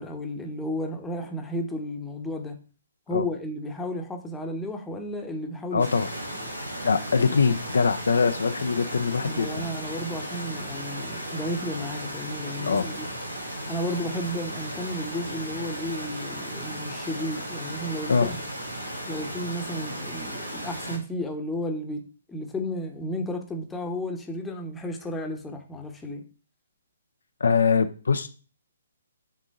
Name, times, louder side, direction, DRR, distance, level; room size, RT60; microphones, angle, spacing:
voice 1, 0.0-2.6 3.1-5.8 9.2-13.1 13.7-18.4 19.1-22.0 22.3-26.2, left 1 dB, 10° left, 1.0 m, -33 dB
voice 2, 5.7-6.1 6.8-9.6 12.6-12.9 18.1-18.3 27.4-28.3, left 5 dB, 65° left, 0.5 m, -23 dB
sound 1, 5.8-21.0, right 1 dB, 85° right, 1.9 m, -35 dB
6.3 x 3.7 x 5.2 m
figure-of-eight pair, 130°, 0 cm